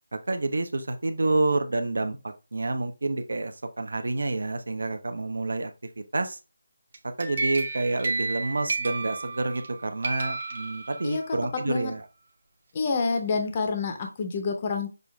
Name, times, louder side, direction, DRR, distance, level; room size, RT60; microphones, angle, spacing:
voice 1, 0.1-5.7 6.1-6.4 7.2-12.0, right 2 dB, 65° right, 8 dB, 0.9 m, -28 dB
sound 1, 6.9-9.7 10.0-11.3, right 3 dB, 35° right, 0.9 m, -32 dB
voice 2, 12.7-14.9, left 4 dB, 20° left, 4 dB, 0.7 m, -28 dB
6.6 x 2.4 x 3.3 m, 0.28 s
figure-of-eight pair, 180°, 0 cm